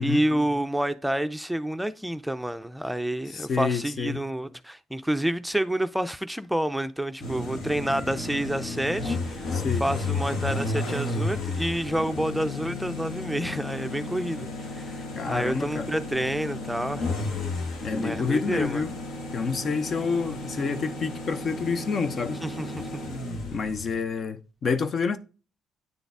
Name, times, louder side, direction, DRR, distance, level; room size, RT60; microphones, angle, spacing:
voice 1, 0.0-17.1 18.0-18.8 22.4-22.9, right 1 dB, 5° right, 0.5 m, -29 dB
voice 2, 3.3-4.2 9.5-9.9 15.2-15.9 17.8-18.9 19.3-22.4 23.5-25.2, left 5 dB, 50° left, 0.7 m, -28 dB
sound 1, 7.2-24.0, left 2 dB, 75° left, 1.3 m, -33 dB
9.1 x 3.9 x 3.4 m
supercardioid pair, 65°, 0 cm